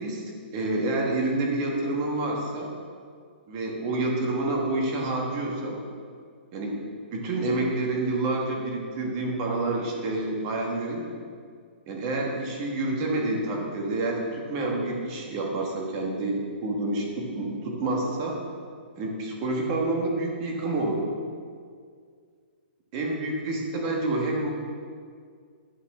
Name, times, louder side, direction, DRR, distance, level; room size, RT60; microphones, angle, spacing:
voice 1, 0.0-2.7 3.5-5.8 6.5-11.1 11.9-18.4 19.0-21.0 22.9-24.5, right 2 dB, 25° right, 0 dB, 1.4 m, -28 dB
11.0 x 5.6 x 5.9 m, 2.1 s
hypercardioid pair, 175°, 6 cm